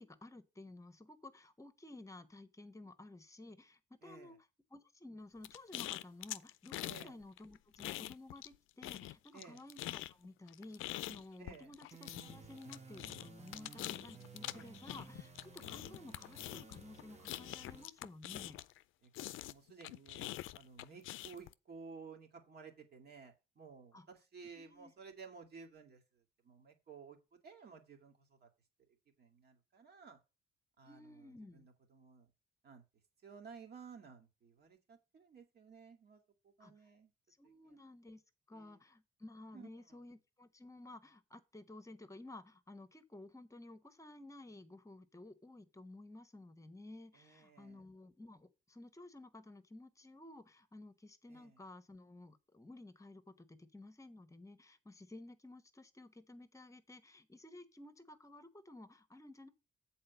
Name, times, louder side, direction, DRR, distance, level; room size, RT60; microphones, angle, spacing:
voice 1, 0.0-18.6 23.9-24.1 24.4-24.9 30.8-31.6 36.6-36.7 37.4-38.2 38.5-59.5, left 2 dB, 15° left, 1.2 m, -54 dB
voice 2, 4.0-4.4 6.8-7.2 9.3-9.6 11.4-11.7 14.5-14.7 19.0-26.0 26.4-28.1 28.4-28.5 29.2-30.2 30.8-32.3 32.6-32.8 33.2-37.1 38.5-38.8 39.5-39.7 47.1-47.8 51.3-51.6, right 5 dB, 55° right, 2.5 m, -55 dB
sound 1, 5.4-7.1 7.4-8.5 8.8-18.8 19.1-21.5, left 16 dB, 90° left, 0.4 m, -45 dB
sound 2, 11.9-17.9, right 5 dB, 35° right, 1.2 m, -56 dB
7.7 x 4.3 x 6.8 m
cardioid pair, 90°, 20 cm